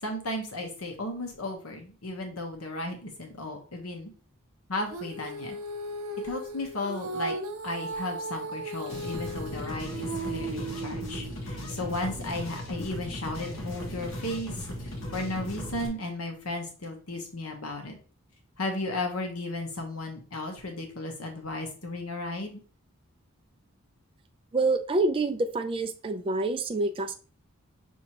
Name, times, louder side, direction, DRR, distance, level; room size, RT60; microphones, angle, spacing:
voice 1, 0.0-4.1 4.7-5.6 6.2-7.4 7.6-14.6 15.1-18.0 18.6-22.6, left 2 dB, 85° left, 3 dB, 1.1 m, -34 dB
Female singing, 4.9-11.4, right 2 dB, 75° right, 0.7 m, -36 dB
sound 1, 8.8-15.9, left 1 dB, 65° left, 1.0 m, -37 dB
voice 2, 24.5-27.1, right 2 dB, 25° right, 5 dB, 0.4 m, -27 dB
6.1 x 2.8 x 2.9 m, 0.38 s
head